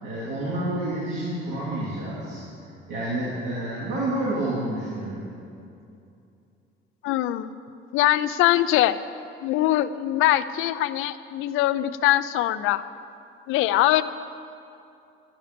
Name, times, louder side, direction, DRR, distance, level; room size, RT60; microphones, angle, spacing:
voice 1, 0.0-2.4 2.9-5.3, right 1 dB, 60° right, -8 dB, 2.5 m, -29 dB
voice 2, 7.0-7.5 7.9-8.9 9.4-12.8 13.5-14.0, left 14 dB, 90° left, 14 dB, 0.5 m, -22 dB
12.5 x 9.8 x 5.1 m, 2.6 s
cardioid pair, 160°, 21 cm